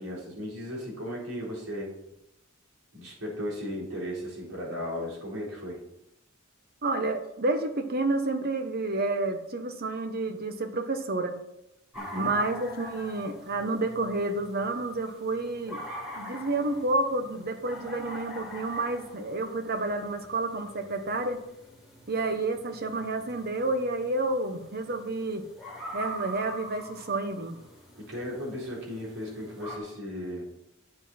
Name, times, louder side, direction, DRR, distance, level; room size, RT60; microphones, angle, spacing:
voice 1, 0.0-1.9 2.9-5.8 11.9-12.3 28.0-30.4, equal, 90° right, -4 dB, 4.1 m, -36 dB
voice 2, 6.8-11.4 12.1-15.8 16.1-21.4 22.1-25.4 25.9-27.6, right 2 dB, 50° right, 7 dB, 1.1 m, -30 dB
sound 1, 11.9-29.8, equal, ahead, 2.4 m, -44 dB
9.9 x 7.7 x 4.3 m, 0.87 s
head